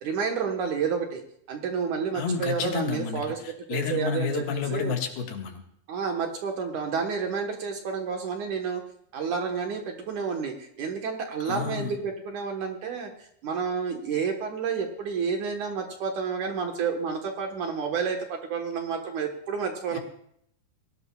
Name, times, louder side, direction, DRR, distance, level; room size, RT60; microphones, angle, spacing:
voice 1, 0.0-1.2 1.5-4.9 5.9-8.8 9.1-13.1 13.4-20.0, right 6 dB, 60° right, 3 dB, 2.4 m, -30 dB
voice 2, 2.1-3.2 3.7-5.6 11.5-11.9 19.9-20.0, left 6 dB, 75° left, 3 dB, 3.6 m, -30 dB
21.5 x 17.5 x 2.4 m, 0.70 s
omnidirectional pair, 4.6 m